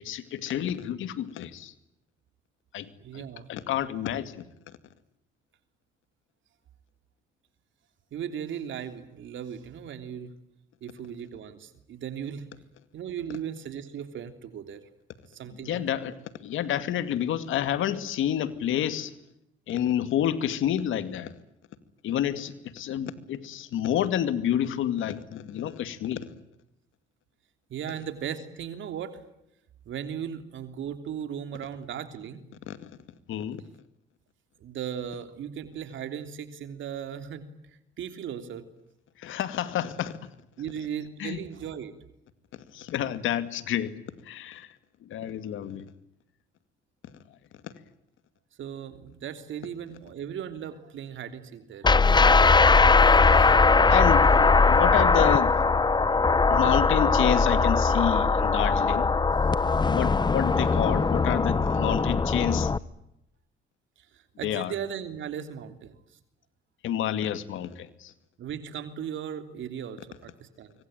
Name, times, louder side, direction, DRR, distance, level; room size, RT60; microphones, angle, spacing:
voice 1, 0.0-1.7 2.7-2.9 3.1-3.2 3.5-4.4 15.6-16.2 16.4-19.1 19.7-21.4 22.0-26.3 32.7-33.0 33.3-33.6 39.2-40.3 41.2-41.4 42.7-43.9 44.3-44.7 45.0-45.9 47.6-47.7 53.3-53.6 53.9-55.6 56.1-56.2 56.5-59.1 59.6-62.7 64.4-64.7 66.8-68.1, left 10 dB, 80° left, 2.3 m, -29 dB
voice 2, 3.0-3.5 8.1-10.3 10.8-12.4 12.9-14.8 15.3-16.0 27.7-29.2 29.8-32.4 34.6-37.4 38.0-38.6 40.6-41.9 48.6-51.9 64.1-66.0 68.4-70.7, right 8 dB, 75° right, 3.3 m, -37 dB
sound 1, 51.8-62.8, left 4 dB, 20° left, 1.0 m, -20 dB
25.0 x 25.0 x 9.1 m
cardioid pair, 90°, 20 cm